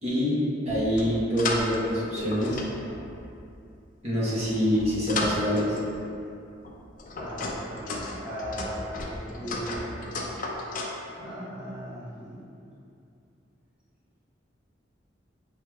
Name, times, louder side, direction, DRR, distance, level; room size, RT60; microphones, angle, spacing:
voice 1, 0.0-2.6 4.0-5.8, equal, 35° right, -9 dB, 1.0 m, -26 dB
sound 1, 0.7-1.9 2.2-3.5 4.2-6.0 6.6-11.0, left 2 dB, 45° left, 0.4 m, -34 dB
voice 2, 7.2-10.3 11.2-12.4, equal, 5° right, -12 dB, 0.8 m, -38 dB
5.5 x 3.2 x 2.3 m, 2.5 s
head